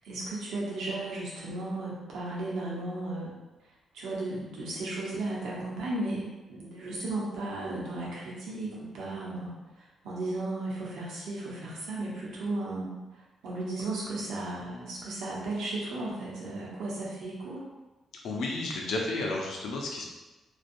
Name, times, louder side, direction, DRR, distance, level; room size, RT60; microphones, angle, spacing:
voice 1, 0.0-3.3 3.9-12.9 13.4-17.6, right 2 dB, 80° right, -6 dB, 0.8 m, -35 dB
voice 2, 18.2-20.1, left 2 dB, 75° left, 0 dB, 0.5 m, -32 dB
2.6 x 2.3 x 2.5 m, 1.1 s
supercardioid pair, 60°, 0 cm